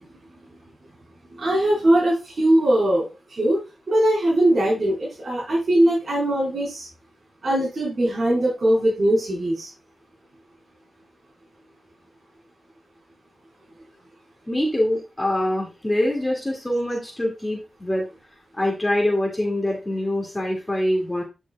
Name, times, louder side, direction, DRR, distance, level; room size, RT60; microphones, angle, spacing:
voice 1, 1.4-3.6 3.9-6.9 7.4-9.7, right 1 dB, 55° right, -6 dB, 4.6 m, -20 dB
voice 2, 14.5-18.0 18.5-21.2, left 1 dB, 15° left, -1 dB, 2.3 m, -24 dB
10.5 x 6.6 x 2.4 m, 0.27 s
wide cardioid pair, 95°, 0 cm